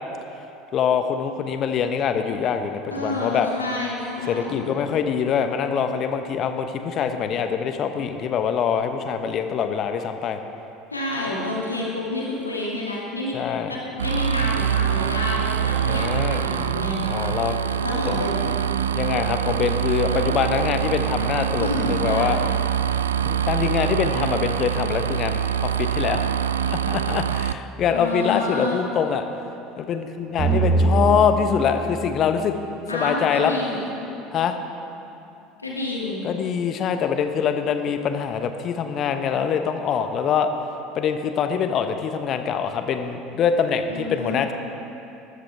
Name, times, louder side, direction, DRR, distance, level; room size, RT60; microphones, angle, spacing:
voice 1, 0.7-3.5 4.3-10.4 13.3-13.8 15.9-16.4 17.1-17.6 18.0-18.1 18.9-22.4 23.2-26.2 26.6-29.2 29.8-32.6 32.9-33.5 34.3-34.6 36.2-40.5 40.9-44.5, left 7 dB, 40° left, 8 dB, 1.0 m, -24 dB
voice 2, 2.9-4.6 10.9-13.4 13.7-17.0 17.8-18.5 21.6-22.3 27.9-28.9 32.9-33.9 35.6-36.2 43.9-44.4, left 2 dB, 85° left, -3 dB, 2.3 m, -29 dB
sound 1, 14.0-27.5, right 9 dB, 75° right, 0.3 m, -24 dB
sound 2, 30.4-33.6, right 3 dB, 40° right, 3.7 m, -24 dB
19.0 x 13.0 x 3.5 m, 2.8 s
figure-of-eight pair, 70°, 0 cm